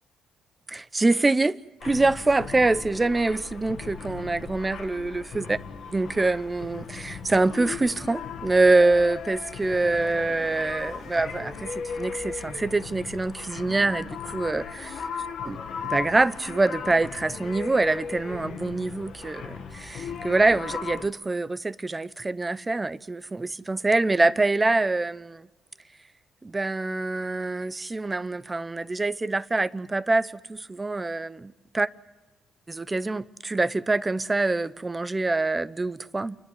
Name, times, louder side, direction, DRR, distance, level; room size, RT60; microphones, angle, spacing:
voice 1, 0.7-5.6 5.9-15.0 15.5-15.6 15.8-25.5 26.4-31.9 32.7-36.4, right 2 dB, 20° right, 0.8 m, -25 dB
sound 1, 1.8-21.1, left 6 dB, 70° left, 1.9 m, -37 dB
29.0 x 11.0 x 9.8 m
cardioid pair, 90°, 0 cm